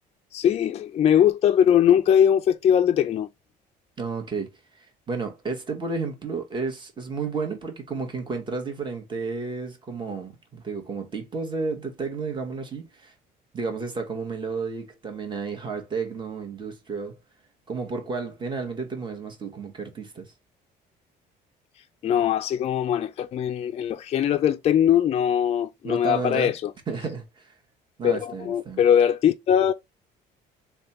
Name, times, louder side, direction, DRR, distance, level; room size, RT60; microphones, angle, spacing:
voice 1, 0.3-3.3 22.0-26.7 28.0-29.7, left 9 dB, 40° left, 0.4 m, -21 dB
voice 2, 4.0-13.1 13.5-17.2 17.7-20.3 25.8-26.5 26.9-27.5 28.0-28.8, right 4 dB, 25° right, 1.2 m, -32 dB
3.3 x 2.3 x 4.2 m
cardioid pair, 110°, 17 cm